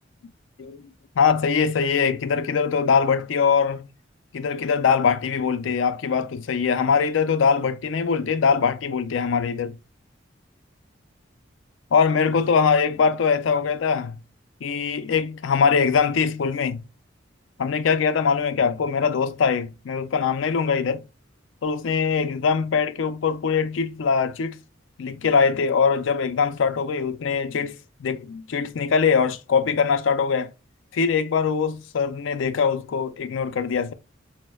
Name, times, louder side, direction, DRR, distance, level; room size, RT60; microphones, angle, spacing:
voice 1, 1.2-3.9 4.3-9.8 11.9-14.2 14.6-16.8 17.6-21.0 21.6-24.6 25.0-30.5 30.9-33.9, left 6 dB, 80° left, 0.4 m, -22 dB
6.1 x 2.0 x 2.2 m
head